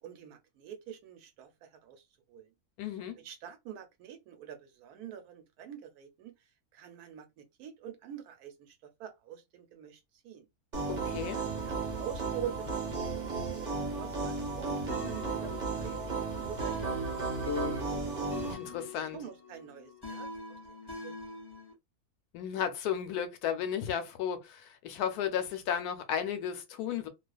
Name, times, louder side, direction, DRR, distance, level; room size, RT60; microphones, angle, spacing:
voice 1, 0.0-2.5 3.2-10.5 11.3-17.8 18.0-18.2 19.1-20.6 20.9-21.1, right 9 dB, 80° right, 1.1 m, -46 dB
voice 2, 2.8-3.2 10.9-11.4 18.5-19.2 22.3-27.1, left 8 dB, 85° left, 1.1 m, -34 dB
sound 1, 10.7-18.5, right 4 dB, 35° right, 0.8 m, -34 dB
sound 2, 14.9-21.7, left 4 dB, 30° left, 0.4 m, -42 dB
2.4 x 2.3 x 2.2 m
omnidirectional pair, 1.6 m